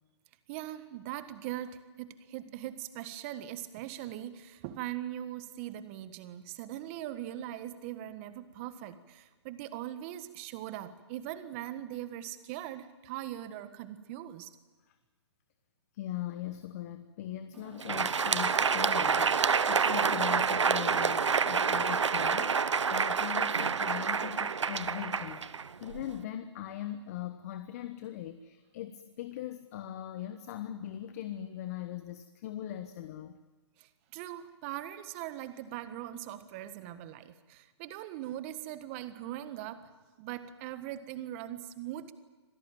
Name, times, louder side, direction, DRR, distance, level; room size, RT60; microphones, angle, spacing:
voice 1, 0.5-14.5 33.8-39.9 40.2-42.1, right 12 dB, 25° right, 11 dB, 1.5 m, -41 dB
voice 2, 15.9-33.4, left 12 dB, 30° left, 10 dB, 1.1 m, -40 dB
Crowd, 17.7-26.2, right 5 dB, 80° right, 1.0 m, -28 dB
26.0 x 18.0 x 9.2 m, 1.3 s
hypercardioid pair, 150°, 15 cm